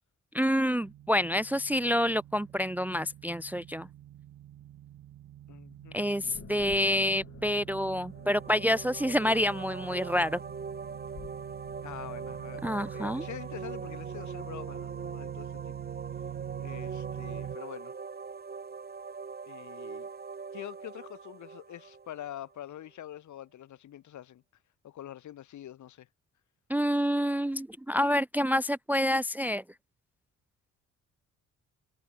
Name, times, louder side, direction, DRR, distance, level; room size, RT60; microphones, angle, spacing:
voice 1, 0.3-3.9 5.9-10.4 12.6-13.3 26.7-29.6, equal, 5° right, 0.5 m, -28 dB
sound 1, 0.8-17.6, right 12 dB, 75° right, 2.8 m, -44 dB
voice 2, 5.5-6.0 11.8-15.8 16.6-17.9 19.5-20.1 20.5-24.4 24.8-26.1, left 11 dB, 70° left, 3.9 m, -45 dB
sound 2, 6.2-14.2, left 7 dB, 45° left, 2.1 m, -54 dB
sound 3, 8.0-22.7, right 5 dB, 30° right, 3.2 m, -42 dB
cardioid pair, 90°, 30 cm